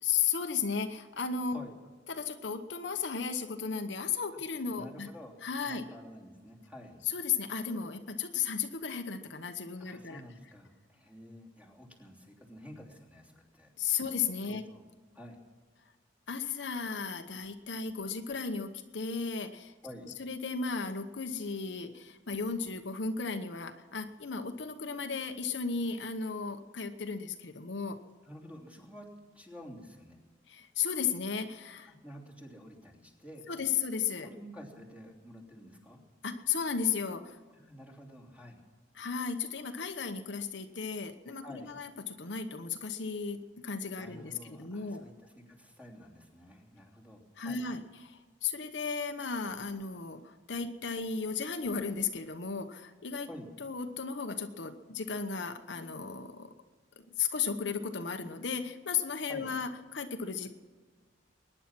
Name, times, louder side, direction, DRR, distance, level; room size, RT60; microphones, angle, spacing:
voice 1, 0.0-1.6 2.1-5.1 5.4-5.8 7.1-10.2 13.8-14.6 16.3-19.7 20.2-28.0 30.5-31.9 33.5-34.3 36.2-37.4 38.9-45.0 47.4-53.3 53.6-56.5 57.0-60.5, left 6 dB, 65° left, 6 dB, 1.0 m, -35 dB
voice 2, 4.7-5.3 5.6-7.0 9.8-13.7 14.0-14.2 14.4-14.8 15.1-15.4 19.8-20.1 28.2-29.1 29.3-30.2 31.8-33.7 34.2-36.0 37.6-38.6 41.4-41.8 44.0-47.6 53.2-53.5 59.2-59.5, equal, 5° right, -1 dB, 3.1 m, -50 dB
22.0 x 10.0 x 6.1 m, 1.4 s
head